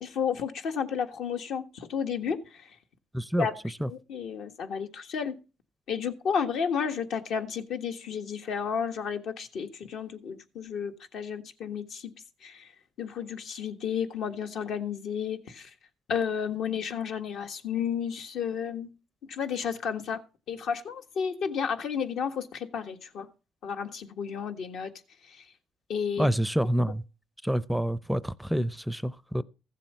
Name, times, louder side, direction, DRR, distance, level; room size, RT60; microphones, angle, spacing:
voice 1, 0.0-2.8 3.4-3.6 3.9-5.4 5.9-12.1 12.4-12.7 13.0-15.7 16.1-18.9 19.3-20.2 20.5-23.3 23.6-24.9 25.2-25.4 25.9-26.3, left 7 dB, 70° left, 1.5 m, -32 dB
voice 2, 3.1-3.5 3.8-3.9 26.2-27.0 27.4-29.4, equal, ahead, 0.5 m, -27 dB
15.0 x 7.5 x 5.4 m
cardioid pair, 90°, 0 cm